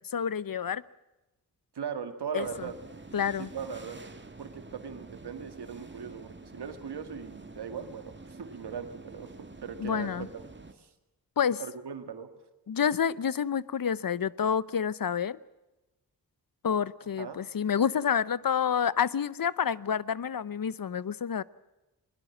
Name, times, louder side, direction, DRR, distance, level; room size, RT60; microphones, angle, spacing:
voice 1, 0.1-0.8 2.3-2.4 3.1-3.5 9.8-10.3 11.4-11.6 12.7-15.4 16.6-21.4, left 7 dB, 60° left, 19 dB, 0.8 m, -28 dB
voice 2, 1.7-2.8 3.4-4.0 4.4-10.5 10.7-10.9 11.6-12.3 17.2-17.4, right 7 dB, 90° right, 8 dB, 2.2 m, -39 dB
sound 1, 2.4-10.7, right 3 dB, 30° right, 2.1 m, -48 dB
21.5 x 21.0 x 7.3 m, 1.0 s
cardioid pair, 65°, 39 cm